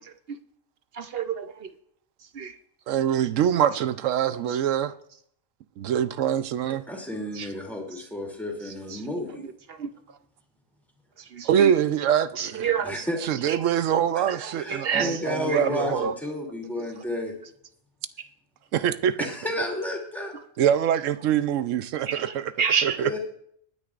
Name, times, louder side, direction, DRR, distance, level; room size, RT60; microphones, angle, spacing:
voice 1, 0.9-1.7 2.3-2.5 7.4-7.5 8.9-9.0 9.7-9.9 11.3-11.7 12.4-13.0 13.5-13.6 14.3-15.2 15.5-15.6 15.9-16.1 22.1-23.0, right 7 dB, 55° right, 0.9 m, -29 dB
voice 2, 2.9-4.9 5.8-6.8 11.4-12.7 13.2-16.1 18.7-19.2 20.6-22.5 22.8-23.2, right 9 dB, 90° right, 1.0 m, -24 dB
voice 3, 6.9-9.4 12.8-13.2 14.2-14.3 14.5-17.3 19.2-20.4 23.0-23.2, left 1 dB, ahead, 2.8 m, -31 dB
22.5 x 9.7 x 2.5 m
omnidirectional pair, 1.3 m